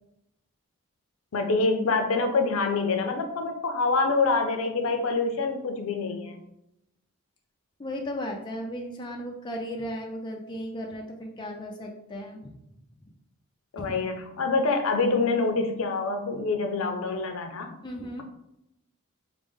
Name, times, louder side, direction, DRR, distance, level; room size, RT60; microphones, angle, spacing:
voice 1, 1.3-6.4 13.7-17.8, left 3 dB, 70° left, 6 dB, 0.5 m, -26 dB
voice 2, 7.8-12.5 13.8-13.9 17.8-18.2, equal, 20° left, 1 dB, 0.4 m, -35 dB
4.9 x 2.0 x 3.5 m, 0.84 s
head